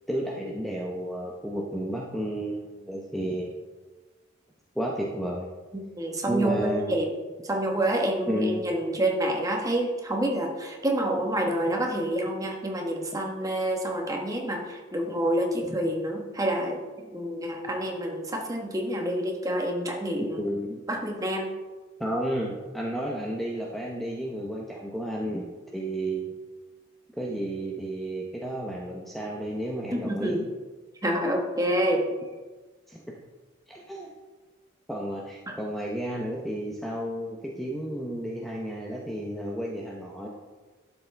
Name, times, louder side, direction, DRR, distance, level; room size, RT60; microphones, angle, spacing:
voice 1, 0.1-3.6 4.7-5.5 6.3-7.0 8.3-8.7 15.7-15.8 20.4-20.8 22.0-25.5 25.7-26.3 27.2-30.4 32.9-33.0 33.7-34.1 34.9-40.3, right 1 dB, ahead, -3 dB, 0.7 m, -32 dB
voice 2, 5.7-7.1 7.4-16.8 17.1-20.4 20.9-21.5 30.1-30.4 31.0-32.1 35.5-35.6, right 1 dB, 15° right, 1 dB, 1.2 m, -28 dB
12.0 x 7.1 x 3.3 m, 1.3 s
head